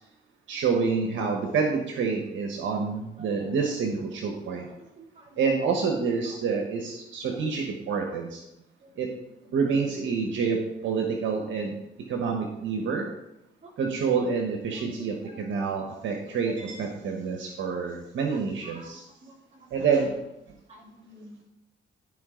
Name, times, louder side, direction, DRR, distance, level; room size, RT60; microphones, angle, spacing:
voice 1, 0.5-4.7 5.4-8.4 9.0-9.1 9.5-11.8 12.1-13.1 13.8-19.0 19.7-20.2, right 5 dB, 75° right, 2 dB, 1.3 m, -27 dB
voice 2, 4.8-5.3 8.8-8.9 13.6-13.7 14.8-14.9 15.2-15.4 18.6-18.9 19.2-19.3 19.6-19.7 20.7-21.4, right 2 dB, 35° right, -1 dB, 2.6 m, -49 dB
13.5 x 5.0 x 3.8 m, 0.89 s
cardioid pair, 90°, 20 cm